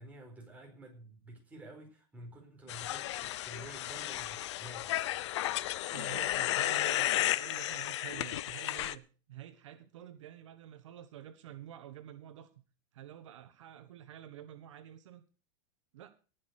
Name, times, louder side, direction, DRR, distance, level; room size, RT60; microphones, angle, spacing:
voice 1, 0.0-5.2, right 1 dB, 10° right, 1 dB, 4.5 m, -51 dB
sound 1, 2.7-8.9, left 14 dB, 70° left, 0.8 m, -33 dB
voice 2, 5.9-12.5 12.9-15.2 15.9-16.1, right 11 dB, 90° right, 9 dB, 1.5 m, -49 dB
19.0 x 6.4 x 6.5 m, 0.37 s
supercardioid pair, 160°, 15 cm